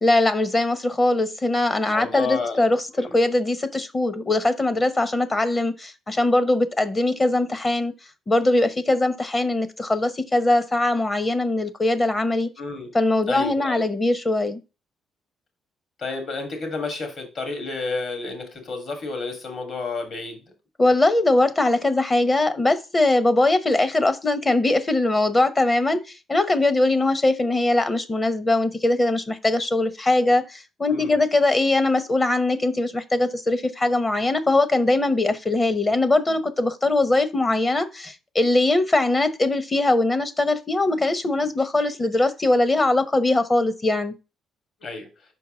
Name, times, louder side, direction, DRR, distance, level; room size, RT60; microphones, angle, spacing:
voice 1, 0.0-7.9 8.3-12.5 12.9-14.6 20.8-44.1, left 2 dB, 25° left, 0.9 m, -21 dB
voice 2, 1.9-2.7 2.9-3.1 12.6-12.9 13.3-13.8 16.0-20.4 30.9-31.2 44.8-45.1, left 3 dB, 55° left, 2.5 m, -30 dB
5.8 x 4.6 x 3.8 m
cardioid pair, 90°, 0 cm